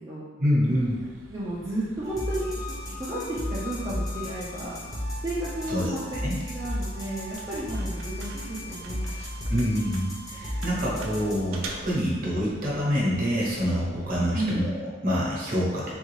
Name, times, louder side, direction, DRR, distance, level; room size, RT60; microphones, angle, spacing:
voice 1, 0.4-0.9 5.7-5.9 6.2-6.4 9.5-15.9, equal, 45° right, -5 dB, 0.9 m, -26 dB
sound 1, 0.6-14.6, right 3 dB, 80° right, 0.4 m, -46 dB
voice 2, 1.2-4.8 5.2-9.0 14.3-14.6, right 1 dB, 20° right, -9 dB, 0.5 m, -33 dB
sound 2, 2.0-11.5, left 1 dB, 20° left, 0.7 m, -34 dB
3.5 x 2.4 x 3.1 m, 1.4 s
head